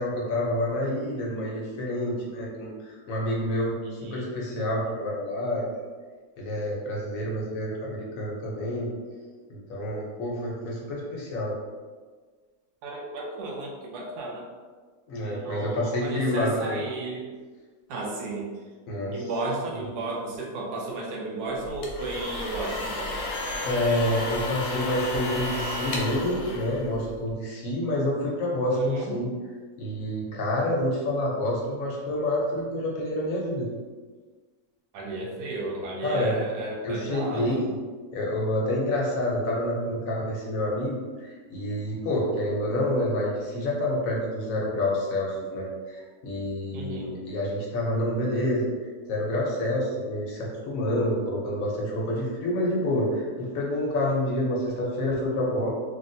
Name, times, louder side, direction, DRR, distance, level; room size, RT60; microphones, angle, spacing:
voice 1, 0.0-5.7 6.4-8.9 9.5-11.6 15.1-16.9 18.9-19.3 23.6-29.3 29.8-33.7 36.0-36.4 36.8-37.8 38.1-48.7 49.1-55.7, left 1 dB, 65° left, -3 dB, 1.1 m, -28 dB
voice 2, 3.8-4.3 12.8-14.5 15.2-17.3 17.9-18.5 19.1-23.2 28.8-29.1 34.9-37.6 46.7-47.2, right 2 dB, 85° right, -3 dB, 1.1 m, -33 dB
sound 1, 21.6-27.3, left 2 dB, 85° left, 1.2 m, -32 dB
3.3 x 2.4 x 2.6 m, 1.4 s
omnidirectional pair, 1.6 m